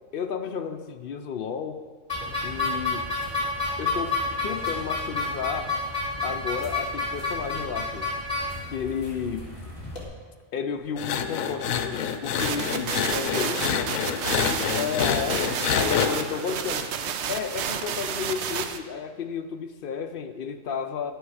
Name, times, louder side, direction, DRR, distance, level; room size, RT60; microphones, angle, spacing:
voice 1, 0.1-1.8 2.4-3.1 3.8-5.7 6.2-8.1 8.7-9.6 10.5-13.6 14.7-16.8 17.3-21.1, left 6 dB, 60° left, 7 dB, 0.6 m, -32 dB
sound 1, 2.1-10.0, left 3 dB, 35° left, 1.7 m, -30 dB
sound 2, 11.0-16.1, left 8 dB, 85° left, 1.0 m, -27 dB
sound 3, 12.3-18.8, right 7 dB, 65° right, 0.8 m, -31 dB
voice 2, 13.3-14.8 15.7-16.8, right 1 dB, 40° right, -6 dB, 1.4 m, -43 dB
10.5 x 6.3 x 4.8 m, 1.5 s
omnidirectional pair, 1.4 m